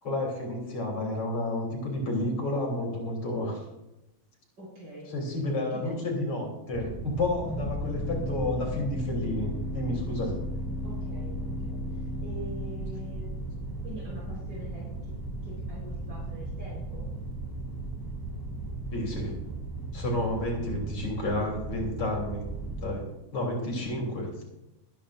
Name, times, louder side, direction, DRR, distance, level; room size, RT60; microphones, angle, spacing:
voice 1, 0.0-3.6 5.1-10.3 18.9-19.3 19.9-22.5 22.8-23.0 23.3-24.3, left 1 dB, 75° left, -1 dB, 4.3 m, -31 dB
voice 2, 4.6-5.4 5.7-5.9 10.8-13.3 13.8-15.1 15.4-17.0, equal, 55° right, -6 dB, 4.8 m, -44 dB
sound 1, 6.7-22.9, right 1 dB, 15° left, 1.2 m, -35 dB
23.5 x 10.0 x 2.5 m, 0.95 s
omnidirectional pair, 2.3 m